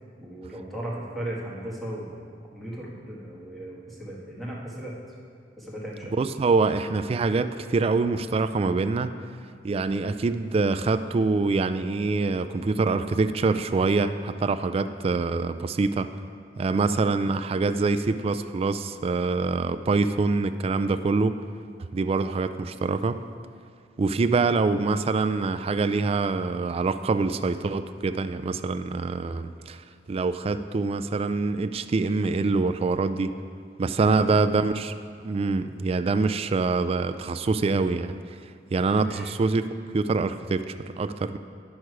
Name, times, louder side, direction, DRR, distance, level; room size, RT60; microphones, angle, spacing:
voice 1, 0.2-2.2 2.5-5.0 5.6-6.1 16.7-16.9 34.0-34.4 38.9-39.3, right 1 dB, ahead, -6 dB, 1.6 m, -36 dB
voice 2, 6.2-9.2 9.6-16.1 16.6-21.3 21.9-23.2 24.0-29.8 30.1-33.4 33.8-34.9 35.2-38.2 38.7-39.7 39.9-41.4, right 3 dB, 35° right, 10 dB, 0.3 m, -25 dB
9.9 x 6.4 x 4.6 m, 2.2 s
head